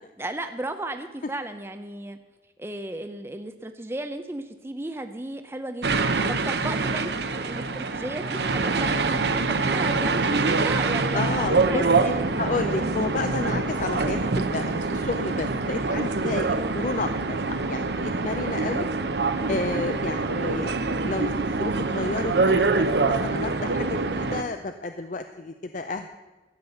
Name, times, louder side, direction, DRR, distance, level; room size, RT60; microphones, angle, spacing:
voice 1, 0.2-2.2 2.6-6.0 6.3-12.2 16.4-16.7, right 1 dB, 15° right, 7 dB, 0.6 m, -35 dB
sound 1, 5.8-24.4, right 3 dB, 70° right, 0.7 m, -25 dB
Piano, 6.7-14.3, right 1 dB, 50° right, 2.7 m, -44 dB
voice 2, 11.1-18.9 19.5-20.7 21.0-26.2, left 3 dB, 45° left, 8 dB, 0.5 m, -31 dB
13.0 x 8.2 x 6.9 m, 1.2 s
head